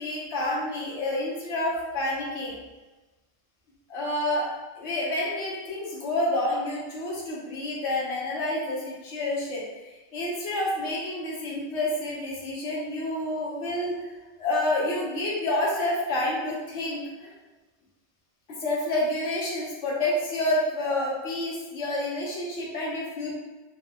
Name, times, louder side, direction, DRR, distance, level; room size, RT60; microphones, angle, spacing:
voice 1, 0.0-2.5 3.9-4.5 4.8-9.6 10.1-13.9 14.4-17.3 18.6-23.4, left 1 dB, 85° left, -5 dB, 1.1 m, -28 dB
3.7 x 2.0 x 2.7 m, 1.2 s
omnidirectional pair, 1.1 m